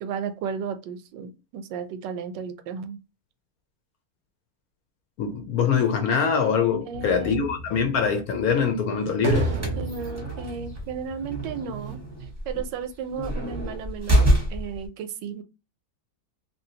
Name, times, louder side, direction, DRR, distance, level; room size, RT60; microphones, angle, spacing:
voice 1, 0.0-3.0 6.9-7.5 9.8-12.0 12.5-15.4, right 6 dB, 85° right, 1.2 m, -34 dB
voice 2, 5.2-9.5, left 6 dB, 70° left, 0.9 m, -23 dB
sound 1, 6.9-11.9, right 4 dB, 60° right, 0.6 m, -32 dB
sound 2, 9.5-14.9, right 1 dB, 10° right, 0.8 m, -26 dB
2.9 x 2.6 x 2.7 m
omnidirectional pair, 1.9 m